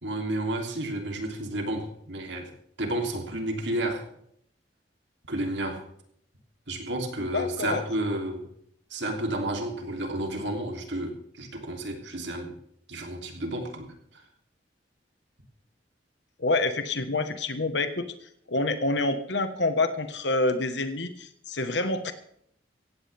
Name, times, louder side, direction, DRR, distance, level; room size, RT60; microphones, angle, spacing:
voice 1, 0.0-2.5 2.8-4.1 5.3-5.8 6.7-8.5 8.9-12.5 12.9-13.9 14.1-14.2, right 1 dB, 80° right, 3 dB, 3.2 m, -31 dB
voice 2, 7.3-7.8 16.4-18.1 18.5-22.1, left 2 dB, 75° left, 9 dB, 1.4 m, -27 dB
17.0 x 16.0 x 3.5 m, 0.68 s
head